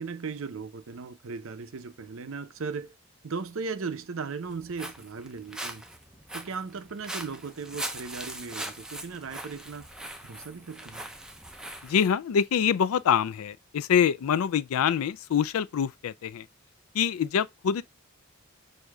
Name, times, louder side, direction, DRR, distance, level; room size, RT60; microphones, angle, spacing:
voice 1, 0.0-2.9 3.2-5.8 6.3-9.9 10.2-11.1, right 4 dB, 65° right, 0.6 m, -37 dB
Walk footsteps, 4.5-12.1, right 1 dB, 5° right, 0.4 m, -40 dB
voice 2, 11.8-16.5 16.9-17.8, left 8 dB, 80° left, 0.4 m, -25 dB
6.3 x 2.7 x 2.2 m
head